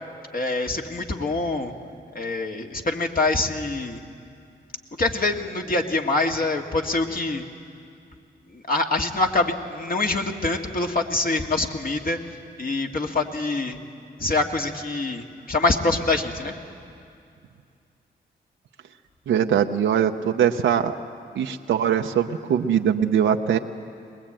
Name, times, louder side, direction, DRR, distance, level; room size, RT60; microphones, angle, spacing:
voice 1, 0.3-1.7 2.1-4.0 5.0-7.5 8.5-12.2 12.6-13.8 14.2-16.5, left 2 dB, 50° left, 2 dB, 2.0 m, -25 dB
voice 2, 19.3-21.0 21.3-23.6, right 8 dB, 85° right, 4 dB, 0.7 m, -21 dB
22.0 x 20.5 x 8.9 m, 2.4 s
cardioid pair, 60°, 19 cm